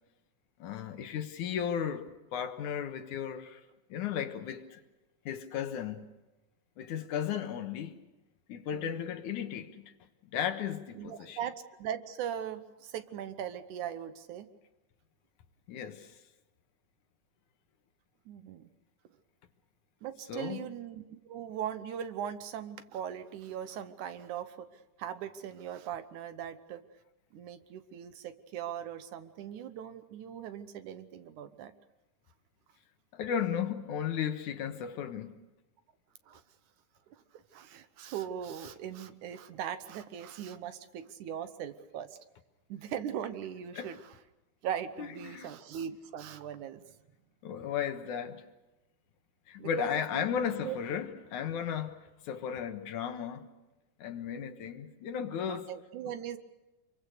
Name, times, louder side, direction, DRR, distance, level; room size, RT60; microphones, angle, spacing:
voice 1, 0.6-3.6 3.9-4.8 5.3-6.0 6.8-7.9 8.5-9.9 10.3-11.4 15.7-16.1 20.3-20.7 33.1-35.4 43.8-43.9 45.0-45.5 47.4-48.4 49.5-52.0 52.2-53.5 54.0-55.7, left 8 dB, 70° left, 2.7 m, -35 dB
voice 2, 8.7-9.1 11.0-14.5 18.3-18.7 20.0-24.7 25.0-26.8 27.3-31.7 36.3-36.4 37.1-42.2 42.7-44.1 44.6-46.8 49.6-50.3 50.6-50.8 55.4-56.4, right 9 dB, 70° right, 2.4 m, -40 dB
26.5 x 23.5 x 6.7 m
omnidirectional pair, 3.7 m